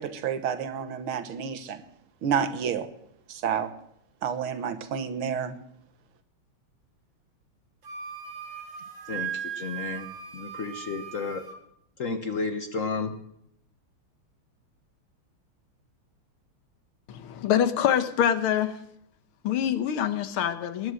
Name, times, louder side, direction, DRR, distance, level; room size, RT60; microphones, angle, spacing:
voice 1, 0.0-1.8 2.2-2.9 3.3-3.7 4.2-5.6, right 7 dB, 75° right, 9 dB, 2.0 m, -29 dB
Wind instrument woodwind instrument, 7.8-11.6, right 8 dB, 50° right, 2.7 m, -38 dB
voice 2, 9.1-10.1 10.3-11.4 12.0-13.1, left 4 dB, 50° left, 8 dB, 1.1 m, -32 dB
voice 3, 17.1-18.8 19.4-20.9, left 9 dB, 80° left, 12 dB, 1.8 m, -25 dB
20.0 x 9.5 x 6.4 m, 0.76 s
omnidirectional pair, 2.4 m